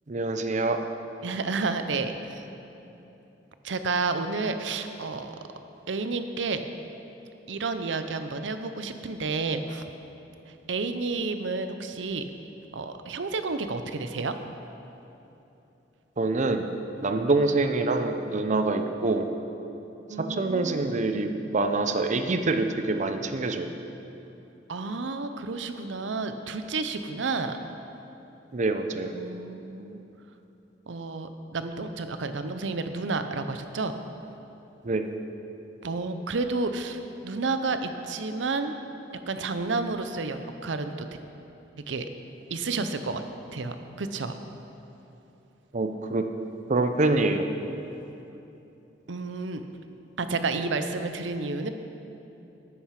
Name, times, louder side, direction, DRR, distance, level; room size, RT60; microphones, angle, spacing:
voice 1, 0.1-0.8 16.2-16.7 17.0-19.3 20.2-23.7 28.5-29.1 34.8-35.1 45.7-46.2 46.7-47.5, right 3 dB, 40° right, 7 dB, 0.6 m, -25 dB
voice 2, 1.2-2.4 3.6-5.4 5.9-6.6 7.5-9.8 10.7-12.2 12.7-14.4 20.1-20.9 24.7-27.6 29.1-30.0 30.9-33.9 35.8-38.7 39.3-41.1 41.9-42.1 42.5-43.2 43.5-44.4 49.1-49.6 50.2-51.7, right 3 dB, 90° right, 9 dB, 0.7 m, -30 dB
9.5 x 8.8 x 5.9 m, 3.0 s
head